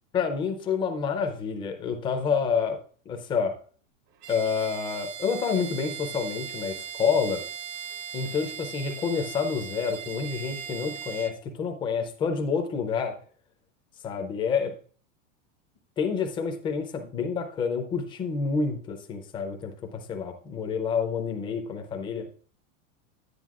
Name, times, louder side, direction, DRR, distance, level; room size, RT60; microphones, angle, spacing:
voice 1, 0.1-2.8 3.1-3.6 4.3-7.4 8.1-13.2 14.0-14.7 16.0-22.3, left 6 dB, 15° left, 5 dB, 0.4 m, -28 dB
Bowed string instrument, 4.2-11.4, right 8 dB, 45° right, 0.7 m, -39 dB
9.8 x 9.3 x 2.4 m, 0.42 s
supercardioid pair, 160°, 38 cm